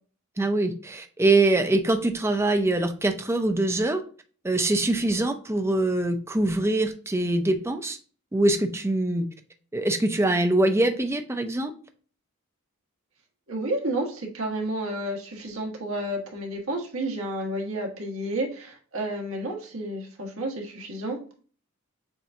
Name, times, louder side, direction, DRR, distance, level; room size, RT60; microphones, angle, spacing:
voice 1, 0.4-4.0 4.4-8.0 8.3-9.3 9.7-11.7, right 2 dB, 10° right, 7 dB, 0.5 m, -23 dB
voice 2, 13.5-21.2, right 1 dB, 80° right, 0 dB, 1.4 m, -31 dB
7.1 x 2.7 x 2.5 m, 0.41 s
head